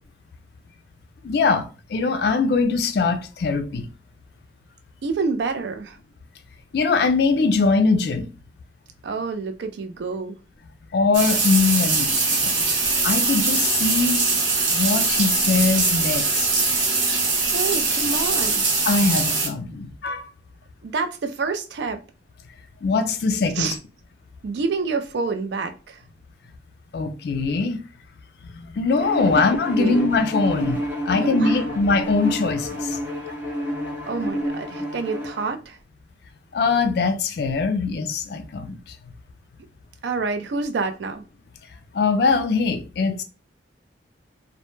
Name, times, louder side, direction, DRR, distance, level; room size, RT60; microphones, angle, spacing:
voice 1, 1.2-3.9 6.7-8.3 10.9-12.7 13.0-14.3 14.7-16.7 18.8-20.2 22.8-23.8 26.9-27.8 28.5-33.0 36.5-38.8 41.9-43.2, left 4 dB, 55° left, 0.3 m, -22 dB
voice 2, 5.0-6.0 9.0-10.4 17.3-18.7 20.8-22.0 23.5-23.8 24.4-26.0 29.7-30.0 31.1-31.7 34.1-35.8 40.0-41.2, right 4 dB, 65° right, 0.3 m, -28 dB
sound 1, 11.1-19.5, right 3 dB, 90° right, 0.8 m, -22 dB
Bowed string instrument, 29.0-35.6, equal, 10° right, 0.5 m, -29 dB
2.1 x 2.0 x 3.0 m
head